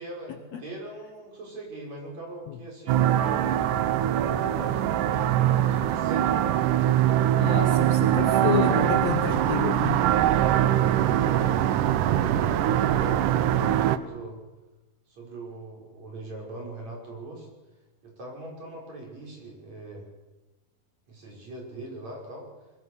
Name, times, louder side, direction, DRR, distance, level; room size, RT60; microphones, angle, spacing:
voice 1, 0.0-7.3 10.5-11.7 12.3-14.4 15.1-17.5 18.0-20.1 21.1-22.5, right 1 dB, 50° right, -1 dB, 7.0 m, -41 dB
sound 1, 2.9-14.0, right 11 dB, 75° right, 2.3 m, -23 dB
voice 2, 7.4-10.0, left 9 dB, 65° left, 7 dB, 1.8 m, -29 dB
24.0 x 21.0 x 6.5 m, 1.1 s
omnidirectional pair, 4.1 m